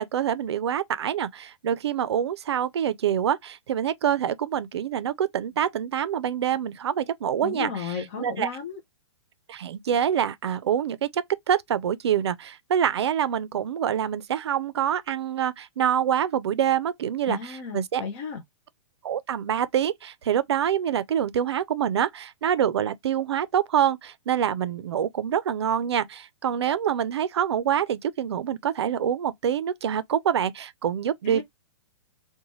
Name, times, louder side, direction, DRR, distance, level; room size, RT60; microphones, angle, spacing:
voice 1, 0.0-8.5 9.5-18.0 19.0-31.4, right 9 dB, 65° right, 0.5 m, -26 dB
voice 2, 7.4-8.8 17.3-18.4 31.2-31.4, left 6 dB, 25° left, 0.4 m, -34 dB
4.0 x 2.2 x 3.0 m
hypercardioid pair, 180°, 15 cm